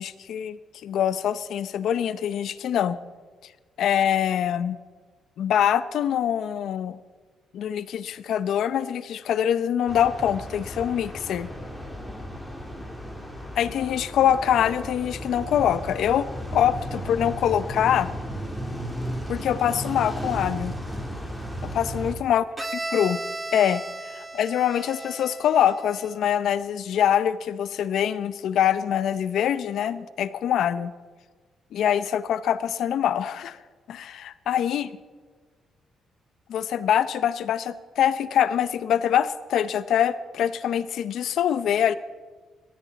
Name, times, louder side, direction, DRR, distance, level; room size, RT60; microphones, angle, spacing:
voice 1, 0.0-3.0 3.8-4.8 5.4-7.0 7.5-11.5 13.6-16.3 16.5-18.1 19.3-20.7 21.6-22.4 22.9-23.2 23.5-30.9 31.7-33.6 33.9-34.9 36.5-41.9, left 9 dB, 75° left, 14 dB, 0.7 m, -24 dB
sound 1, 9.9-22.1, equal, ahead, 3.2 m, -34 dB
Bowed string instrument, 22.6-26.3, right 2 dB, 20° right, 1.0 m, -35 dB
18.5 x 13.0 x 4.1 m, 1.4 s
cardioid pair, 90°, 0 cm